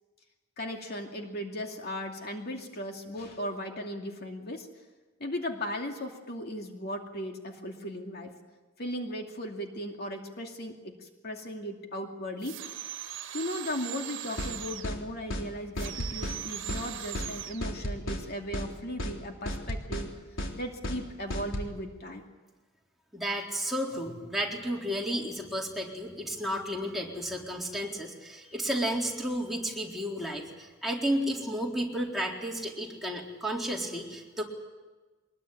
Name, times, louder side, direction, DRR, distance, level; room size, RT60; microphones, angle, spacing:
voice 1, 0.6-4.7 5.2-8.3 8.8-12.6 13.3-20.1 20.5-22.2, equal, 55° left, 2 dB, 2.6 m, -37 dB
sound 1, 12.4-15.0 15.8-17.7, right 11 dB, 70° right, 1.5 m, -39 dB
sound 2, 14.4-14.5 14.8-15.0 15.3-15.5 15.8-16.4 16.7-16.8 17.1-17.3 17.6-18.2 18.5-18.7 19.0-19.2 19.5-20.1 20.4-20.5 20.8-21.0 21.3-21.7, equal, 85° left, 3.6 m, -33 dB
voice 2, 23.1-34.4, equal, ahead, -3 dB, 3.9 m, -32 dB
23.0 x 21.0 x 9.4 m, 1.2 s
head